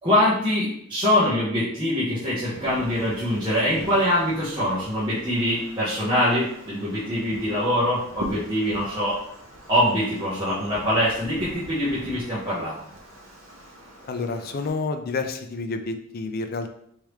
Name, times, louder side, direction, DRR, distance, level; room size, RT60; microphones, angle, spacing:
voice 1, 0.0-9.2 9.7-12.8, left 1 dB, 25° right, -11 dB, 1.1 m, -23 dB
Wind, 2.4-14.7, right 1 dB, 70° right, 0.8 m, -42 dB
voice 2, 14.1-16.7, left 3 dB, 45° left, 7 dB, 0.4 m, -29 dB
3.5 x 3.2 x 3.2 m, 0.70 s
head